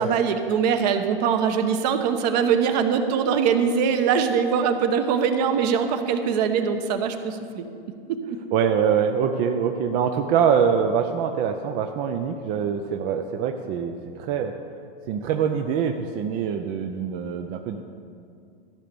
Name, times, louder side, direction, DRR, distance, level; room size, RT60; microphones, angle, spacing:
voice 1, 0.0-7.7 8.1-8.2, right 7 dB, 45° right, 8 dB, 1.0 m, -22 dB
voice 2, 8.5-14.5 15.1-17.8, right 7 dB, 25° right, 5 dB, 0.4 m, -24 dB
13.5 x 5.8 x 6.8 m, 2.3 s
hypercardioid pair, 130°, 29 cm